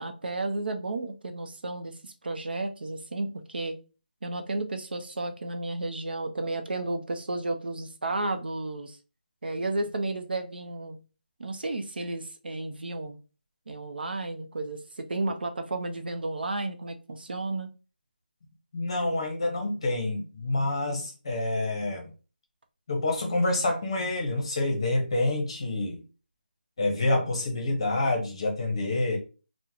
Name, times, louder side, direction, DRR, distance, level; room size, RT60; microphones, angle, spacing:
voice 1, 0.0-3.8 4.2-9.0 9.4-11.0 11.4-13.2 13.7-17.7, right 2 dB, 75° right, 6 dB, 0.6 m, -32 dB
voice 2, 18.7-22.1 22.9-26.0 26.8-29.2, left 2 dB, 35° left, 2 dB, 0.8 m, -27 dB
3.5 x 2.1 x 2.9 m, 0.33 s
figure-of-eight pair, 175°, 5 cm